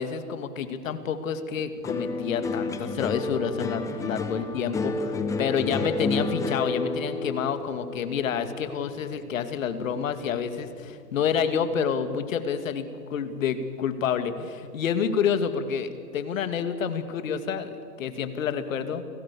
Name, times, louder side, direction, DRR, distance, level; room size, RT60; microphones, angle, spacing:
voice 1, 0.0-19.0, left 7 dB, 55° left, 9 dB, 2.4 m, -28 dB
sound 1, 1.8-10.3 10.6-11.3, left 3 dB, 5° left, 1.0 m, -31 dB
29.5 x 18.5 x 7.0 m, 2.3 s
hypercardioid pair, 135°, 49 cm